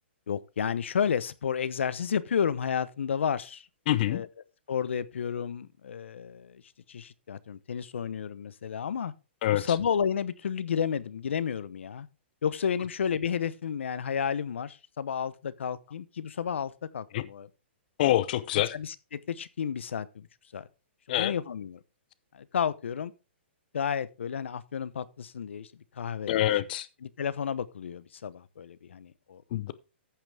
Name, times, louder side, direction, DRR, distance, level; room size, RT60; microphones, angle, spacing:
voice 1, 0.3-3.7 4.1-4.3 4.7-6.6 6.9-9.1 9.5-12.1 12.4-17.5 18.7-20.3 20.5-20.7 21.1-21.8 22.3-23.1 23.7-25.7 26.0-26.6 27.0-29.4, left 7 dB, 80° left, 0.8 m, -31 dB
voice 2, 3.9-4.2 9.4-9.6 17.1-17.2 18.0-18.7 21.1-21.3 26.3-26.9 29.5-29.7, left 13 dB, 50° left, 0.8 m, -25 dB
14.0 x 5.9 x 3.4 m
hypercardioid pair, 140°, 6 cm